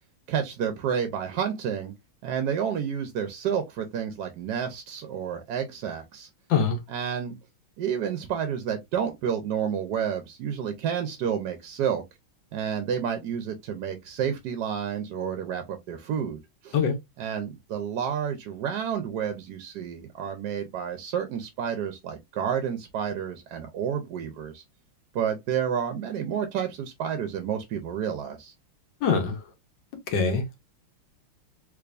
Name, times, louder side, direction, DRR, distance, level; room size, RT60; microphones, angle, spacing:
voice 1, 0.3-1.9 2.2-6.3 6.9-7.4 7.8-12.0 12.5-16.8 17.2-24.6 25.1-28.5, right 8 dB, 70° right, 1.0 m, -30 dB
voice 2, 29.0-29.4 30.1-30.6, left 5 dB, 65° left, 1.5 m, -23 dB
3.5 x 3.3 x 2.4 m
omnidirectional pair, 2.3 m